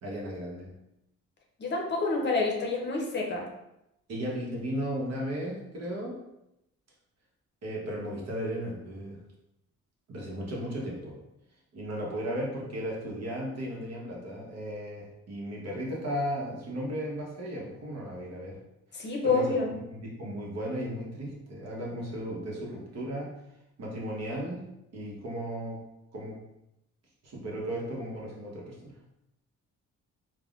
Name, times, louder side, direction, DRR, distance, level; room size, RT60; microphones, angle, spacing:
voice 1, 0.0-0.7 4.1-6.2 7.6-9.2 10.1-11.2 11.7-18.6 18.9-23.4 23.8-25.8 26.1-26.4 27.2-28.9, equal, 55° right, -3 dB, 1.0 m, -35 dB
voice 2, 1.6-3.5 18.9-19.7, left 3 dB, 35° left, 0 dB, 0.6 m, -28 dB
3.4 x 2.2 x 2.4 m, 0.86 s
cardioid pair, 90°, 30 cm